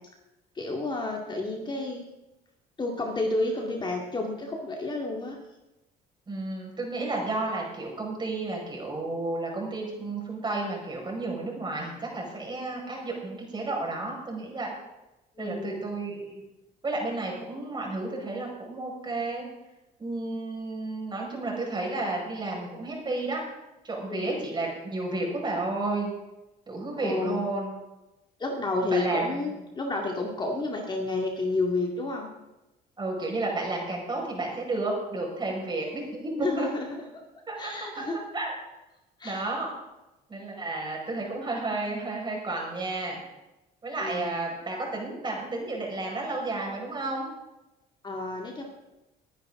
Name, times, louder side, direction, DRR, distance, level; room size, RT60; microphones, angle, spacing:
voice 1, 0.6-2.1 2.8-5.4 15.4-15.9 24.1-24.3 27.0-27.4 28.4-32.3 36.4-37.0 37.6-38.2 39.2-39.5 44.0-44.3 48.0-48.6, left 2 dB, 25° left, 1 dB, 2.2 m, -30 dB
voice 2, 6.3-14.7 15.4-16.4 16.8-19.5 20.0-23.4 23.8-26.1 26.7-27.7 28.9-29.4 33.0-36.7 37.5-37.7 38.3-38.5 39.2-39.7 40.3-43.2 43.8-47.3, right 2 dB, 25° right, -1 dB, 5.5 m, -32 dB
21.0 x 10.0 x 3.8 m, 0.98 s
cardioid pair, 110°, 17 cm